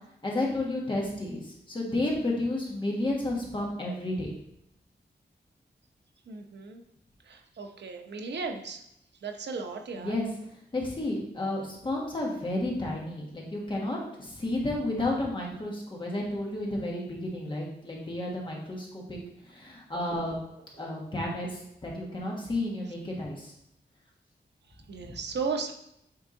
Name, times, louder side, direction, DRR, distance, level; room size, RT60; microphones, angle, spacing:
voice 1, 0.2-4.3 10.0-10.2 10.7-19.2 19.5-20.3 20.8-23.5 25.0-25.1, left 1 dB, 30° left, -2 dB, 1.4 m, -32 dB
voice 2, 6.3-6.8 7.3-8.8 9.2-10.2 20.8-21.0 24.9-25.7, right 4 dB, 75° right, 3 dB, 0.8 m, -35 dB
8.6 x 3.6 x 3.8 m, 0.77 s
wide cardioid pair, 180°, 18 cm